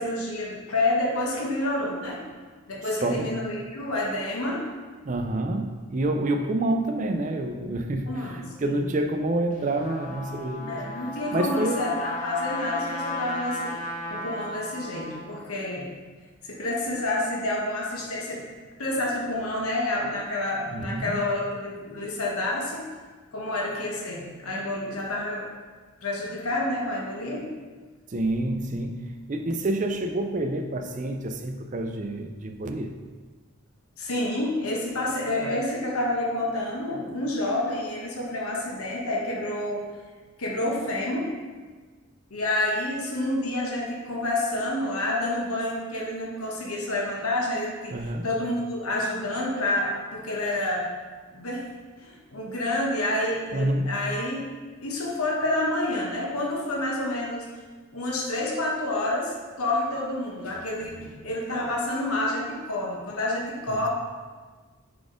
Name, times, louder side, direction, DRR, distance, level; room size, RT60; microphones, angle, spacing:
voice 1, 0.0-2.2 2.7-4.7 8.1-8.8 10.7-13.8 14.1-15.9 16.4-18.4 18.8-22.9 23.3-25.5 26.0-27.5 34.0-39.8 40.4-41.3 42.3-47.9 48.2-50.8 51.3-51.6 52.0-54.5 54.8-57.4 57.9-63.9, left 1 dB, 85° left, -2 dB, 1.0 m, -28 dB
voice 2, 5.0-10.8 11.3-11.8 20.7-21.2 28.1-32.9 47.9-48.3 53.5-53.9 63.7-63.8, right 1 dB, 35° right, 5 dB, 0.4 m, -28 dB
Trumpet, 9.5-15.5, left 1 dB, 35° left, 0.6 m, -35 dB
4.8 x 4.1 x 5.0 m, 1.4 s
head